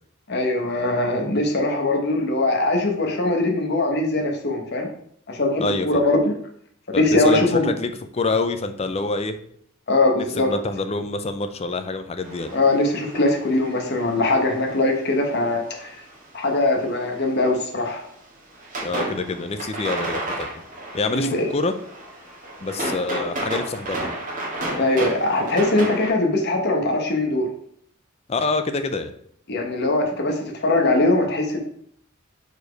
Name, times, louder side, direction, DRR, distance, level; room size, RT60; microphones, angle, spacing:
voice 1, 0.3-4.9 5.3-6.3 7.0-7.7 9.9-10.5 12.5-16.0 16.3-18.0 21.1-21.5 24.8-27.5 29.5-31.6, left 2 dB, 50° left, 2 dB, 1.1 m, -21 dB
voice 2, 5.6-6.1 6.9-9.4 10.4-12.5 18.8-20.6 20.9-21.7 22.6-24.1 28.3-29.1, left 3 dB, 30° left, 9 dB, 0.5 m, -26 dB
sound 1, 12.2-16.3 16.8-17.9 18.2-26.1, right 1 dB, 40° right, 1.7 m, -32 dB
4.9 x 4.6 x 4.6 m, 0.65 s
head